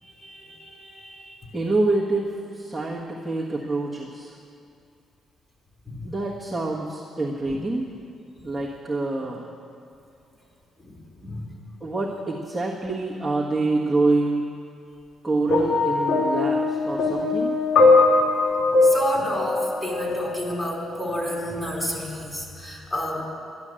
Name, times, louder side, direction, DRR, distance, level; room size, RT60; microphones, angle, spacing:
voice 1, 0.0-1.6 5.9-6.1 7.4-7.6 9.2-9.3 10.8-11.5 18.8-23.2, left 1 dB, 15° left, -2 dB, 3.9 m, -31 dB
voice 2, 1.5-4.4 6.0-7.9 8.4-9.5 11.8-14.5 15.2-17.5, right 2 dB, ahead, -6 dB, 1.5 m, -26 dB
sound 1, 15.5-20.6 21.5-21.7, left 3 dB, 80° left, 2.5 m, -21 dB
12.0 x 11.5 x 7.7 m, 2.5 s
cardioid pair, 90°, 0 cm